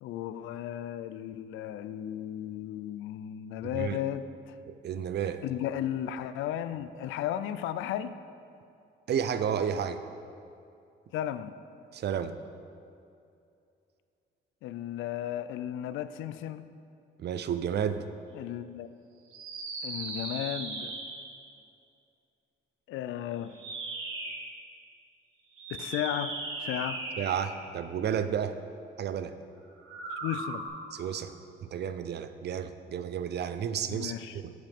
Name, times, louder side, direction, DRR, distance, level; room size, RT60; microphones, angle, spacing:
voice 1, 0.0-4.6 5.4-8.2 11.1-11.5 14.6-16.7 18.3-18.9 19.8-20.9 22.9-23.5 25.7-27.0 30.2-30.6 33.9-34.4, left 11 dB, 85° left, 13 dB, 0.4 m, -35 dB
voice 2, 4.7-5.4 9.1-10.0 11.9-12.3 17.2-18.0 27.2-28.6 29.0-29.4 30.9-31.4 31.6-34.5, right 8 dB, 55° right, 10 dB, 0.6 m, -32 dB
sound 1, 19.3-21.4 23.4-24.5 25.5-27.7 29.8-30.7, right 3 dB, 90° right, 1.5 m, -38 dB
11.0 x 8.0 x 3.6 m, 2.5 s
cardioid pair, 90°, 20 cm